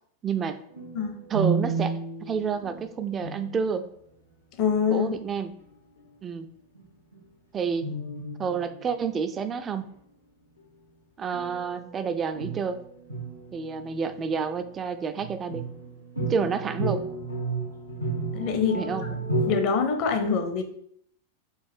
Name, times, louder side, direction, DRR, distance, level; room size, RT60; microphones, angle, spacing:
voice 1, 0.2-0.6 1.3-1.9 2.2-3.9 4.9-5.5 6.2-6.5 7.5-7.9 8.4-9.9 11.2-12.8 13.5-15.6 16.2-17.1 18.7-19.1, right 6 dB, 25° right, 10 dB, 0.3 m, -29 dB
sound 1, 0.7-3.8 5.6-5.7 6.0-6.2 6.8-7.3 7.8-9.4 11.3-14.3 15.2-19.5, right 3 dB, 80° left, 0.9 m, -32 dB
voice 2, 4.6-5.1 18.3-18.8 19.5-20.6, left 6 dB, 40° left, 6 dB, 0.6 m, -24 dB
4.7 x 2.5 x 3.4 m, 0.67 s
figure-of-eight pair, 90°, 0 cm